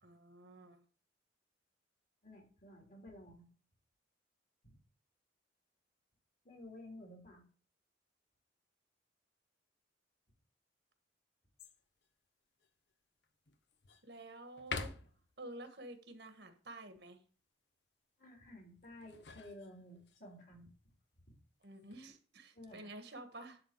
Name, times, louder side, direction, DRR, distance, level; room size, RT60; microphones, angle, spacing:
voice 1, 0.0-0.8 14.0-14.9 15.4-17.2 21.6-23.6, right 2 dB, 65° right, 7 dB, 1.6 m, -50 dB
voice 2, 2.2-3.4 4.6-4.8 6.4-7.4 18.2-20.7 21.3-21.4 22.5-22.9, left 1 dB, 45° left, 0 dB, 3.2 m, -53 dB
sound 1, 11.6-12.1 12.6-12.7 13.2-14.1 14.6-15.3 18.8-20.2 21.6-22.1, left 4 dB, 65° left, 0.9 m, -46 dB
11.0 x 3.9 x 7.4 m, 0.41 s
head